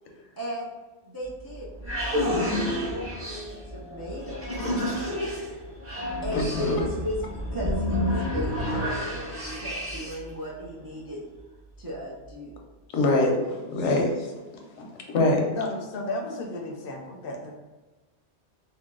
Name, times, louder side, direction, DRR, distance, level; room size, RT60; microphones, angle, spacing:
voice 1, 0.4-0.7 1.0-4.4 5.1-5.2 5.9-11.2 11.8-12.5, equal, 35° right, -5 dB, 0.3 m, -36 dB
sound 1, 1.2-10.3, left 1 dB, 15° right, 0.8 m, -30 dB
voice 2, 6.3-6.8 12.9-14.3 14.8-15.4, left 2 dB, 90° left, 1 dB, 1.0 m, -24 dB
voice 3, 15.5-17.6, left 2 dB, 60° left, 2 dB, 0.7 m, -33 dB
2.8 x 2.7 x 3.6 m, 1.2 s
omnidirectional pair, 1.2 m